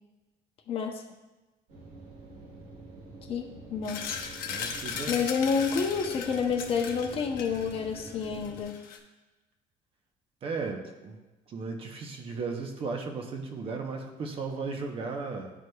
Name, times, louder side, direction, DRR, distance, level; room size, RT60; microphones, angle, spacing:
voice 1, 0.7-1.0 3.3-4.2 5.1-8.8, left 6 dB, 40° left, 3 dB, 0.6 m, -29 dB
sound 1, 1.7-8.6, right 3 dB, 70° right, 1.8 m, -46 dB
sound 2, 3.8-9.0, left 6 dB, 70° left, 0.8 m, -38 dB
voice 2, 4.5-5.2 10.4-11.2 11.5-15.5, right 4 dB, 40° right, 4 dB, 0.7 m, -35 dB
10.5 x 4.8 x 2.3 m, 1.1 s
cardioid pair, 170°, 15 cm